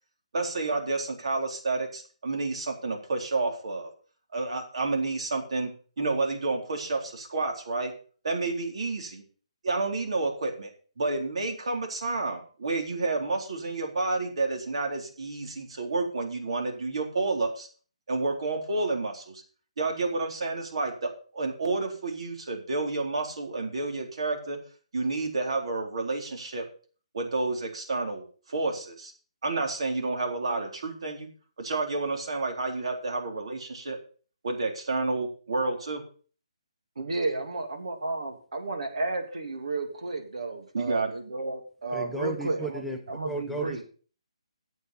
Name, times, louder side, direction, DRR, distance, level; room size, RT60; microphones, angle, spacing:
voice 1, 0.3-3.9 4.3-5.7 6.0-7.9 8.2-9.2 9.6-10.7 11.0-17.7 18.1-19.4 19.8-24.6 24.9-26.6 27.1-29.1 29.4-31.3 31.6-34.0 34.4-36.0 40.7-41.1, right 3 dB, 65° right, 2 dB, 3.9 m, -30 dB
voice 2, 37.0-43.8, right 3 dB, 80° right, 4 dB, 3.1 m, -32 dB
voice 3, 41.9-43.0 43.3-43.8, right 2 dB, ahead, 3 dB, 0.6 m, -34 dB
11.5 x 8.3 x 5.8 m, 0.41 s
hypercardioid pair, 165°, 3 cm